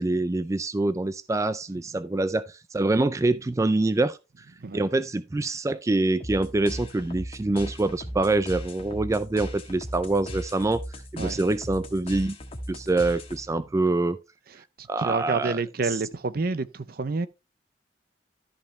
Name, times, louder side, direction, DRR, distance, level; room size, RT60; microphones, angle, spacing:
voice 1, 0.0-4.2 4.7-10.8 11.1-12.4 12.7-14.2 14.9-15.6, right 2 dB, 15° right, 0.3 m, -25 dB
sound 1, 6.2-13.7, equal, 35° left, 1.4 m, -38 dB
voice 2, 14.8-17.3, right 3 dB, 55° right, 0.6 m, -28 dB
13.0 x 5.4 x 3.1 m
head